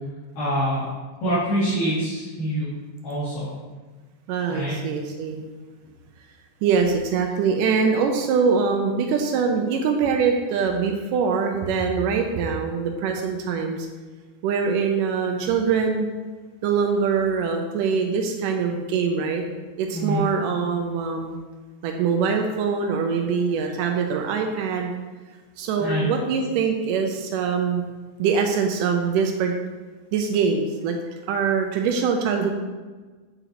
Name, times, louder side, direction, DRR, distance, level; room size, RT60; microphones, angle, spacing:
voice 1, 0.4-0.8 1.2-2.7 3.0-3.5 4.5-4.8 19.9-20.2 25.8-26.1, equal, 70° left, -13 dB, 4.2 m, -25 dB
voice 2, 4.3-5.4 6.6-13.9 14.4-16.1 16.6-19.4 19.8-21.4 21.8-24.9 25.6-27.8 28.2-29.5 30.1-31.0 31.3-32.5, right 5 dB, 85° right, 3 dB, 2.3 m, -23 dB
9.2 x 7.9 x 3.0 m, 1.3 s
omnidirectional pair, 3.7 m